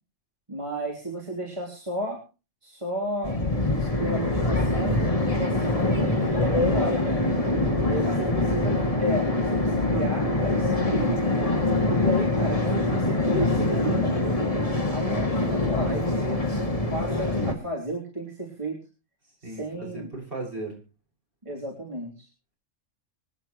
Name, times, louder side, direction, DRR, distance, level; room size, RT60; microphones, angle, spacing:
voice 1, 0.5-2.2 2.6-3.4 4.0-7.0 7.8-11.2 12.0-14.2 14.9-16.4 16.9-18.8 19.4-20.1 21.5-22.3, equal, 25° right, -3 dB, 3.5 m, -33 dB
sound 1, 3.2-17.5, left 2 dB, 25° left, 2.5 m, -24 dB
voice 2, 7.6-8.4 19.4-20.8, right 2 dB, 45° right, -1 dB, 6.7 m, -37 dB
25.5 x 10.0 x 3.1 m, 0.32 s
omnidirectional pair, 1.3 m